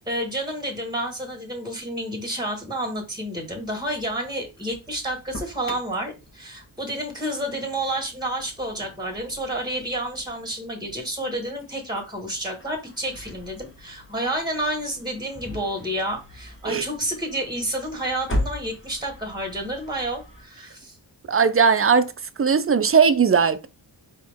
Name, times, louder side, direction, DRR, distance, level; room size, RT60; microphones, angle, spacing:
voice 1, 0.0-20.9, right 1 dB, 10° right, 1.8 m, -30 dB
Engine starting, 3.5-20.4, left 1 dB, 25° left, 1.4 m, -39 dB
voice 2, 21.3-22.1 22.4-23.7, right 6 dB, 30° right, 0.5 m, -18 dB
4.4 x 3.0 x 3.6 m
cardioid pair, 40°, 47 cm